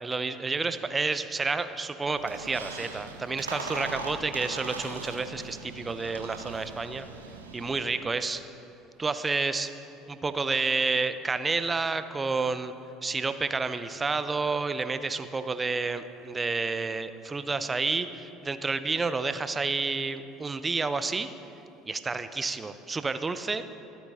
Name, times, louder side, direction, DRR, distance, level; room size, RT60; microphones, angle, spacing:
voice 1, 0.0-7.1 7.5-8.4 9.0-9.7 10.1-12.7 13.0-21.3 21.9-23.6, right 4 dB, 20° right, 11 dB, 0.7 m, -30 dB
Squeak, 2.1-7.9, right 3 dB, 85° right, 0.8 m, -40 dB
24.0 x 8.7 x 2.8 m, 2.9 s
figure-of-eight pair, 65°, 0 cm